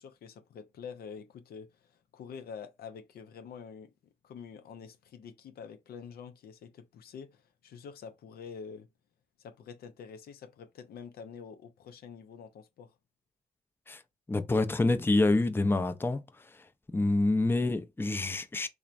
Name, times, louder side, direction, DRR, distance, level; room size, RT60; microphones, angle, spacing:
voice 1, 0.0-3.9 4.2-8.9 9.4-13.0, left 6 dB, 75° left, 0.5 m, -47 dB
voice 2, 14.3-16.2 16.9-18.7, left 2 dB, 15° left, 0.4 m, -27 dB
3.1 x 2.1 x 2.4 m
supercardioid pair, 55°, 16 cm